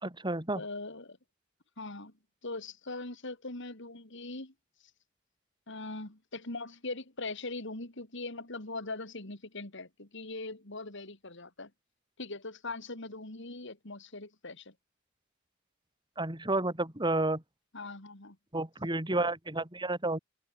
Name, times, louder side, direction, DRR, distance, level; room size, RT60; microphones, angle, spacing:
voice 1, 0.0-0.6 16.2-17.4 18.5-20.2, right 2 dB, 25° right, 3.5 m, -31 dB
voice 2, 0.5-1.2 1.8-2.1 2.4-4.5 5.7-11.7 12.2-14.7 17.7-18.4, left 2 dB, 65° left, 3.7 m, -41 dB
head